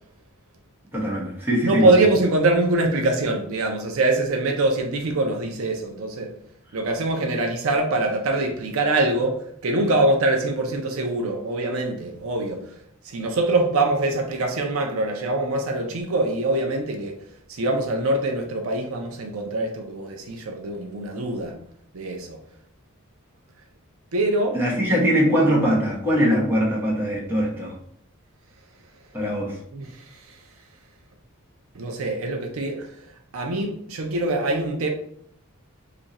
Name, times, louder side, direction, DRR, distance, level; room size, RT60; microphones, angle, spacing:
voice 1, 0.9-2.0 24.5-27.7 29.1-29.6, equal, 10° right, 1.0 m, -22 dB
voice 2, 1.6-6.3 6.7-12.8 13.0-17.2 17.5-21.6 21.9-22.4 24.1-24.6 29.7-30.4 31.7-33.0 33.3-34.9, right 2 dB, 70° right, 0.5 m, -24 dB
2.7 x 2.5 x 4.1 m
head